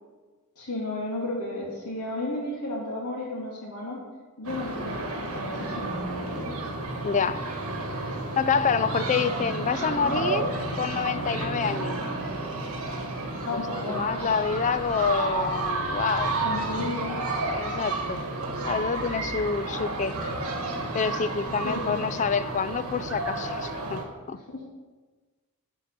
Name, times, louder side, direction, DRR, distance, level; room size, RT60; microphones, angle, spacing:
voice 1, 0.6-4.0 4.4-6.6 13.4-14.4 16.4-17.2 21.6-22.0 24.5-24.7, left 1 dB, 90° left, -4 dB, 2.7 m, -33 dB
sound 1, 4.4-24.0, right 2 dB, 65° right, 1.6 m, -31 dB
voice 2, 7.0-7.4 8.4-10.5 10.8-12.0 13.5-13.6 13.9-16.3 17.5-18.2 18.6-20.2 20.9-24.4, left 6 dB, 35° left, 13 dB, 0.3 m, -27 dB
11.0 x 4.5 x 5.9 m, 1.3 s
head